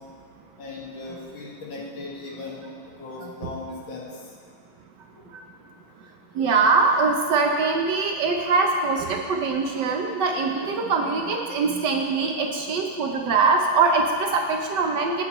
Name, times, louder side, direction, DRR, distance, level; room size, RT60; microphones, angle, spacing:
voice 1, 0.6-2.7 3.0-4.1 10.5-10.9 11.6-11.8, left 3 dB, 65° left, -4 dB, 2.5 m, -37 dB
voice 2, 6.3-15.2, right 4 dB, 65° right, 2 dB, 1.2 m, -22 dB
16.5 x 8.9 x 3.0 m, 2.1 s
omnidirectional pair, 2.3 m